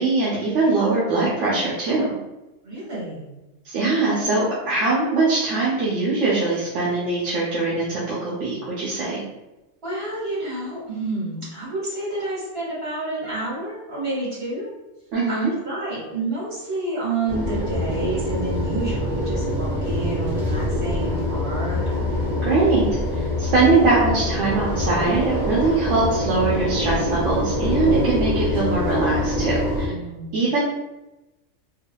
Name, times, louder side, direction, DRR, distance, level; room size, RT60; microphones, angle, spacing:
voice 1, 0.0-2.1 3.6-9.2 15.1-15.5 22.4-22.9 23.1-29.9 30.3-30.6, right 3 dB, 75° right, -6 dB, 0.9 m, -22 dB
voice 2, 2.6-3.5 9.8-14.7 15.3-21.8 29.7-30.4, right 2 dB, 55° right, -7 dB, 1.8 m, -29 dB
sound 1, 17.3-29.9, left 1 dB, 35° right, 0.7 m, -24 dB
3.5 x 2.2 x 2.2 m, 1.0 s
omnidirectional pair, 1.3 m